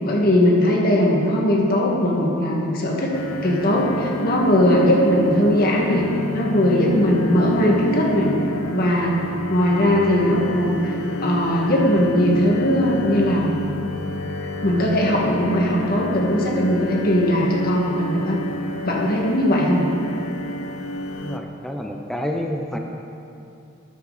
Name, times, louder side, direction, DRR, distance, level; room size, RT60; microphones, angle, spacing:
voice 1, 0.0-3.2 3.4-6.1 6.3-8.3 8.7-9.2 9.5-10.9 11.2-13.5 14.6-18.4 18.9-19.8, left 1 dB, 45° left, -2 dB, 1.7 m, -19 dB
sound 1, 3.1-21.4, equal, 85° left, 0.7 m, -29 dB
voice 2, 21.2-22.8, equal, ahead, 2 dB, 0.5 m, -28 dB
13.0 x 8.6 x 4.0 m, 2.7 s
head